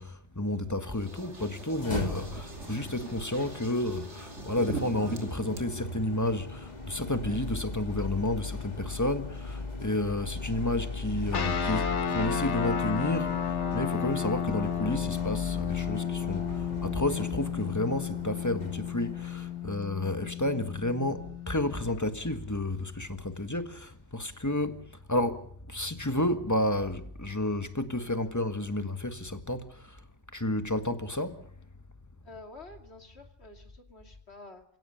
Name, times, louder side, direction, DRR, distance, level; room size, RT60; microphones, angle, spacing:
voice 1, 0.0-30.0 30.3-31.5, left 1 dB, 15° left, 1.7 m, -31 dB
sound 1, 0.9-5.6, right 3 dB, 85° right, 3.3 m, -41 dB
sound 2, 1.6-19.8, left 3 dB, 40° left, 2.0 m, -39 dB
sound 3, 11.3-22.0, left 8 dB, 85° left, 1.5 m, -32 dB
voice 2, 32.2-34.6, left 2 dB, 65° left, 2.8 m, -49 dB
28.5 x 17.5 x 6.5 m
omnidirectional pair, 1.2 m